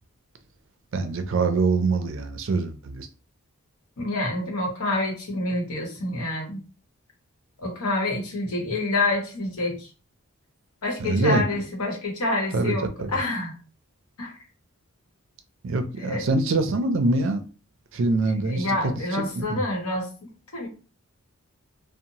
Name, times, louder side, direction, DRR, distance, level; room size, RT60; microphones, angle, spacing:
voice 1, 0.9-3.1 11.0-11.4 12.5-13.1 15.6-17.4 17.9-18.7 19.4-19.6, right 3 dB, 60° right, 0.4 m, -24 dB
voice 2, 4.0-6.6 7.6-9.9 10.8-13.6 14.2-14.3 16.0-16.3 18.4-20.7, left 2 dB, 80° left, 0.9 m, -27 dB
2.6 x 2.1 x 2.8 m
head